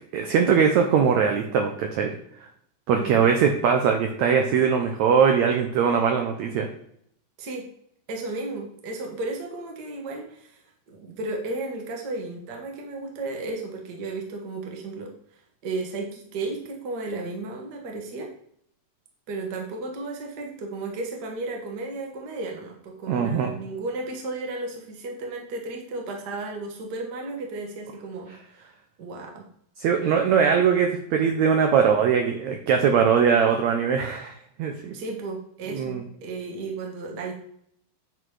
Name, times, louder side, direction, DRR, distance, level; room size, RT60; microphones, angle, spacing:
voice 1, 0.1-2.1 2.9-6.7 23.1-23.5 29.8-34.3 34.6-34.9 35.7-36.0, right 6 dB, 75° right, 3 dB, 1.7 m, -21 dB
voice 2, 8.1-10.6 10.9-15.1 15.6-18.3 19.3-28.7 29.0-29.4 34.9-37.3, right 2 dB, 45° right, 1 dB, 1.3 m, -34 dB
9.7 x 4.0 x 4.8 m, 0.69 s
omnidirectional pair, 4.0 m